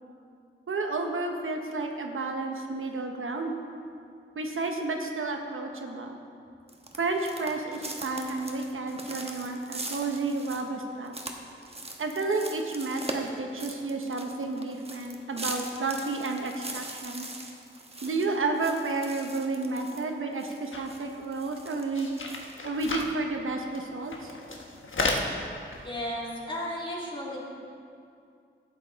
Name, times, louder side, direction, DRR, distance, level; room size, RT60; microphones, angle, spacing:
voice 1, 0.7-3.5 4.3-6.2 7.0-11.1 12.0-17.3 18.0-22.1 22.6-24.3, right 3 dB, 75° right, 3 dB, 1.0 m, -31 dB
sound 1, 6.7-20.0 20.4-23.1, right 2 dB, 30° right, 1.1 m, -41 dB
sound 2, 20.7-20.9 21.2-21.3 21.6-23.1 23.7-23.8 24.1-25.3 25.7-25.9, left 3 dB, 70° left, 1.2 m, -32 dB
voice 2, 25.8-27.5, left 1 dB, 25° left, -5 dB, 2.7 m, -34 dB
12.0 x 8.9 x 4.0 m, 2.4 s
wide cardioid pair, 75°, 21 cm